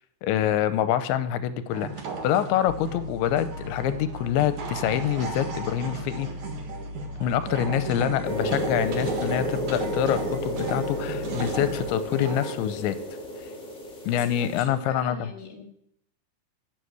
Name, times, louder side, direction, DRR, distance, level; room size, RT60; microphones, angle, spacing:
voice 1, 0.2-1.9 2.2-6.3 7.2-13.0 14.1-15.3, left 10 dB, 85° left, 13 dB, 3.1 m, -26 dB
sound 1, 1.7-12.6, right 4 dB, 55° right, 2.4 m, -36 dB
sound 2, 2.7-11.9, left 1 dB, 45° left, 3.5 m, -39 dB
sound 3, 8.2-14.6, left 1 dB, 65° left, 0.7 m, -32 dB
voice 2, 14.1-15.6, left 3 dB, 25° left, 0 dB, 2.2 m, -42 dB
13.0 x 7.7 x 8.2 m, 0.70 s
omnidirectional pair, 5.3 m